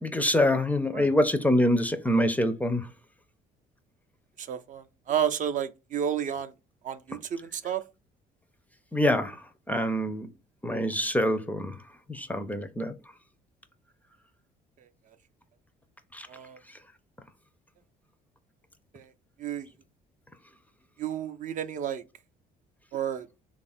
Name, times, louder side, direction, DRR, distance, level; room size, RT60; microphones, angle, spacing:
voice 1, 0.0-2.9 8.9-9.4 9.7-10.3 10.6-11.8 12.1-12.9 16.1-16.3, left 1 dB, 10° left, 0.4 m, -25 dB
voice 2, 4.4-6.5 6.8-7.8 14.8-14.9 16.3-16.6 18.9-19.1 19.4-19.7 21.0-22.0 22.9-23.3, right 9 dB, 50° right, 0.4 m, -31 dB
3.3 x 2.4 x 4.1 m
cardioid pair, 110°, 17 cm